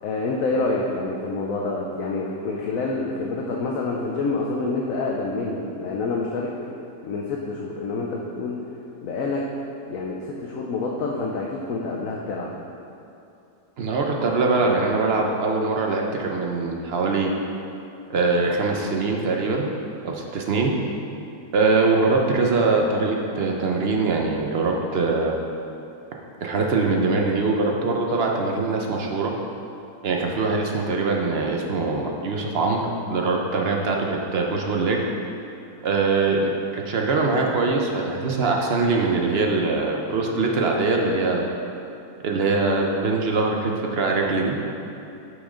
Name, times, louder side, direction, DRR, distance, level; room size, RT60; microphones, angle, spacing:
voice 1, 0.0-6.5 7.0-8.6 9.0-9.4 9.9-12.5, left 3 dB, 65° left, -2 dB, 1.0 m, -27 dB
voice 2, 13.8-17.3 18.1-19.7 20.0-20.7 21.5-25.3 26.4-29.3 30.0-35.0 35.8-41.5 42.2-44.6, right 3 dB, 55° right, 0 dB, 0.7 m, -22 dB
6.3 x 6.1 x 5.0 m, 2.9 s
omnidirectional pair, 1.8 m